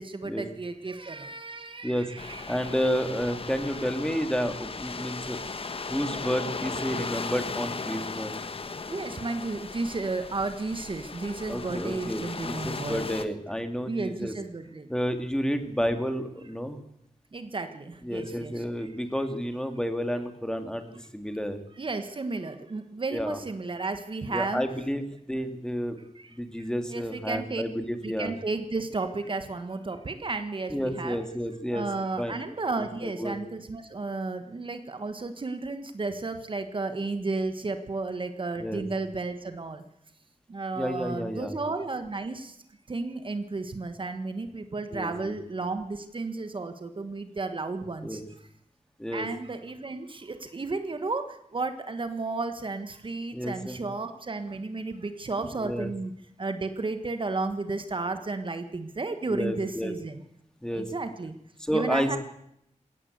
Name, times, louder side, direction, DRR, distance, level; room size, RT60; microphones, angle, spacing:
voice 1, 0.0-2.7 8.9-13.0 13.9-14.8 17.3-18.5 21.8-24.6 26.9-27.6 28.0-31.2 31.7-39.8 40.5-42.5 42.9-48.2 49.1-51.2 51.5-56.1 56.4-60.1 60.7-61.3 61.7-62.2, right 3 dB, 40° right, 8 dB, 1.5 m, -33 dB
sound 1, 2.2-13.2, left 4 dB, 50° left, 1.3 m, -37 dB
voice 2, 2.5-5.4 5.9-8.3 11.5-14.3 14.9-16.8 18.0-21.6 23.1-23.4 24.3-25.0 25.3-26.0 26.3-28.3 30.7-31.9 32.2-32.4 32.8-33.4 38.6-38.8 40.7-41.6 44.9-45.4 48.0-48.2 49.0-49.3 53.3-53.8 55.6-55.9 59.3-59.9 60.6-60.9 61.6-62.2, equal, 5° left, 7 dB, 2.3 m, -30 dB
21.0 x 17.5 x 8.1 m, 0.76 s
wide cardioid pair, 115°, 13 cm